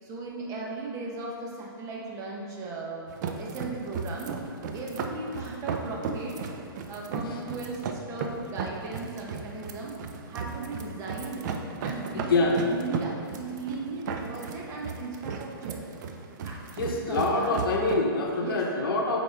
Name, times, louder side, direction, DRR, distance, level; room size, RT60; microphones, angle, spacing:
voice 1, 0.0-4.3 4.7-9.9 10.3-11.5 11.8-15.8 16.4-17.6 18.4-18.6, right 3 dB, 25° right, -3 dB, 1.1 m, -37 dB
sound 1, 3.1-17.9, right 5 dB, 50° right, 0.6 m, -36 dB
voice 2, 12.1-12.6 16.8-19.2, left 2 dB, 70° left, 0 dB, 0.9 m, -25 dB
7.8 x 4.1 x 3.5 m, 2.3 s
hypercardioid pair, 130°, 12 cm